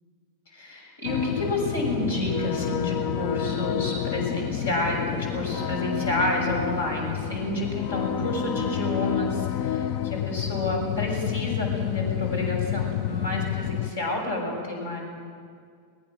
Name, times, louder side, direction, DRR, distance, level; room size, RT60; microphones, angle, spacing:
voice 1, 0.5-15.0, left 1 dB, 65° left, 1 dB, 6.4 m, -29 dB
sound 1, 1.0-13.9, left 11 dB, 45° left, 0.7 m, -29 dB
22.0 x 20.5 x 6.5 m, 2.1 s
figure-of-eight pair, 90°, 0 cm